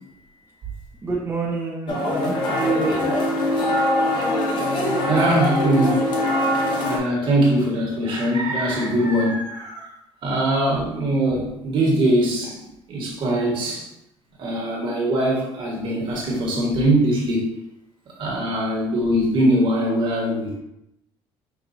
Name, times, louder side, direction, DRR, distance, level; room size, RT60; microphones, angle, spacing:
voice 1, 1.0-3.2, right 3 dB, 25° right, -5 dB, 0.7 m, -27 dB
sound 1, 1.9-7.0, left 1 dB, 50° left, 1.0 m, -22 dB
voice 2, 5.1-6.0 6.8-9.9 10.2-12.6 12.9-13.8 14.4-17.4 18.2-20.6, right 1 dB, 55° right, -3 dB, 1.5 m, -21 dB
6.0 x 2.6 x 2.7 m, 0.83 s
cardioid pair, 120°, 10 cm